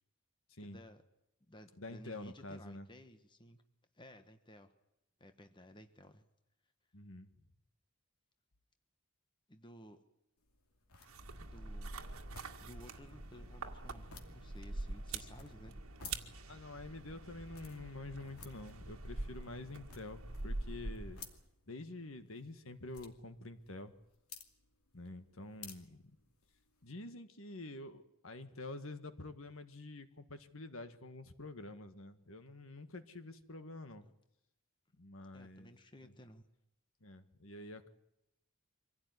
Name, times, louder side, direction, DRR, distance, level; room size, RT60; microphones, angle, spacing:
voice 1, 0.6-1.0 1.5-3.6 3.9-4.7 5.2-6.2 9.5-10.0 11.5-12.1 12.6-15.7 34.0-34.1 35.3-36.5, left 1 dB, 20° left, 7 dB, 1.2 m, -56 dB
voice 2, 1.8-2.9 6.9-7.3 16.5-21.2 21.7-23.9 24.9-26.1 26.8-34.0 35.0-35.7 36.0-36.1 37.0-37.9, left 2 dB, 65° left, 9 dB, 1.7 m, -48 dB
sound 1, 10.4-26.9, left 6 dB, 85° left, 2.6 m, -58 dB
sound 2, 11.0-21.4, right 2 dB, 70° right, 2.0 m, -45 dB
24.5 x 16.5 x 9.6 m, 0.86 s
head